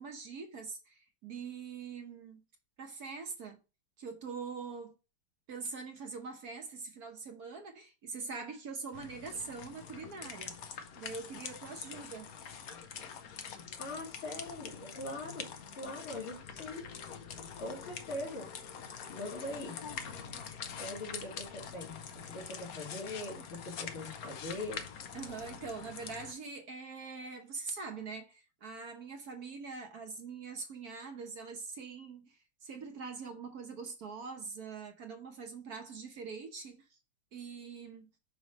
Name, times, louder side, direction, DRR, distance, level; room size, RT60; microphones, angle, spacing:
voice 1, 0.0-2.4 2.8-3.6 4.0-4.9 5.5-10.5 11.0-12.3 25.1-37.0 37.3-38.1, right 4 dB, 55° right, 1.2 m, -43 dB
sound 1, 8.9-26.3, left 7 dB, 60° left, 0.9 m, -45 dB
voice 2, 13.8-16.9 17.6-18.5 19.1-19.8 20.8-24.8, left 2 dB, 80° left, 3.4 m, -42 dB
6.1 x 3.1 x 5.1 m
omnidirectional pair, 2.3 m